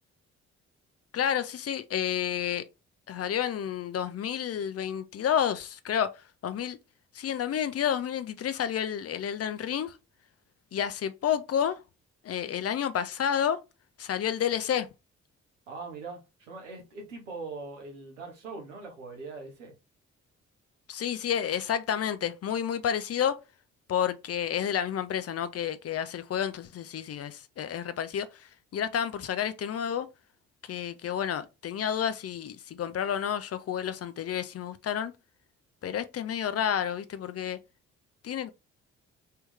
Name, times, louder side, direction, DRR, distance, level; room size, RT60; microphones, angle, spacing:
voice 1, 1.1-2.7 3.1-6.8 7.1-10.0 10.7-11.8 12.2-13.6 14.0-14.9 20.9-23.4 23.9-30.1 30.6-35.1 35.8-37.6 38.2-38.5, left 9 dB, 40° left, 0.6 m, -30 dB
voice 2, 15.7-19.7, right 3 dB, 85° right, 1.2 m, -41 dB
3.4 x 3.1 x 3.5 m
hypercardioid pair, 45°, 36 cm